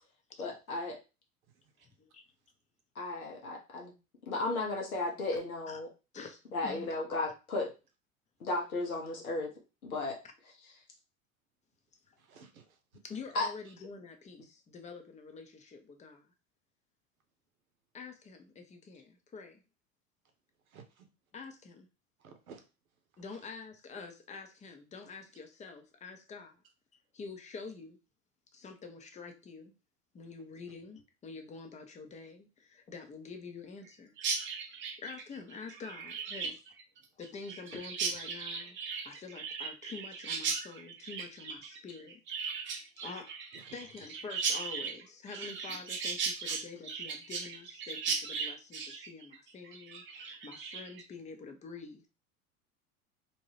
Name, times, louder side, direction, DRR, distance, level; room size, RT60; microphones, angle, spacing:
voice 1, 0.4-1.0 2.9-3.9 4.2-5.9 6.5-7.7 8.4-9.5 9.8-10.2 13.3-13.5, left 2 dB, 90° left, 0 dB, 0.9 m, -34 dB
voice 2, 1.8-2.2 5.7-5.8 6.1-6.9 13.0-16.3 17.9-19.6 21.3-21.9 23.2-26.6 27.1-28.0 28.5-29.7 30.1-34.1 35.0-36.6 37.2-42.5 43.0-43.3 43.7-52.1, left 4 dB, 15° left, 5 dB, 0.5 m, -47 dB
voice 3, 12.2-12.8 20.7-21.1 22.2-22.6 36.4-36.5 43.5-43.7 45.3-45.5 46.5-46.6 50.1-50.2, right 5 dB, 80° right, 6 dB, 0.8 m, -54 dB
Chirp tweet, 34.2-51.0, right 5 dB, 30° right, 0.5 m, -37 dB
2.7 x 2.2 x 3.0 m, 0.30 s
hypercardioid pair, 80°, 42 cm